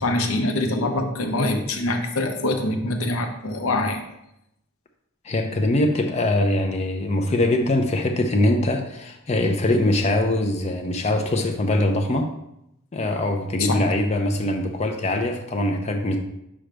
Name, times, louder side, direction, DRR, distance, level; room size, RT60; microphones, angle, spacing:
voice 1, 0.0-4.0 13.6-13.9, left 2 dB, 70° left, 5 dB, 0.8 m, -24 dB
voice 2, 5.2-12.3 12.9-16.2, left 1 dB, 30° left, 4 dB, 0.5 m, -22 dB
6.3 x 5.0 x 3.3 m, 0.82 s
head